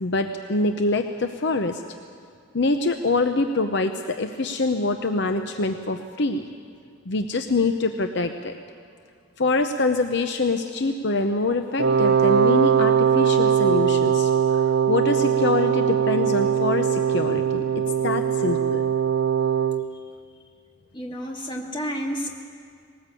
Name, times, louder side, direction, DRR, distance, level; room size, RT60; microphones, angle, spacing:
voice 1, 0.0-1.8 2.5-6.4 7.1-8.6 9.4-14.3 14.7-18.8, left 3 dB, 55° left, 6 dB, 0.8 m, -25 dB
Wind instrument woodwind instrument, 11.8-19.8, right 8 dB, 55° right, 0.6 m, -21 dB
voice 2, 20.9-22.3, equal, 20° left, 0 dB, 2.3 m, -30 dB
20.0 x 19.0 x 8.4 m, 2.2 s
head